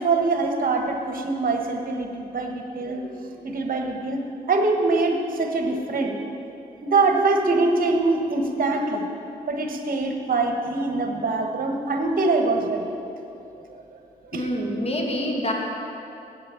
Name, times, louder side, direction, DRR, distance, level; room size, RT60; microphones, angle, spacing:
voice 1, 0.0-3.0 3.4-6.2 6.8-9.0 9.5-12.9 14.3-14.5, right 3 dB, 45° right, 3 dB, 1.4 m, -23 dB
voice 2, 14.3-15.5, equal, 30° left, 0 dB, 2.1 m, -26 dB
8.4 x 7.5 x 7.0 m, 2.7 s
hypercardioid pair, 45°, 20 cm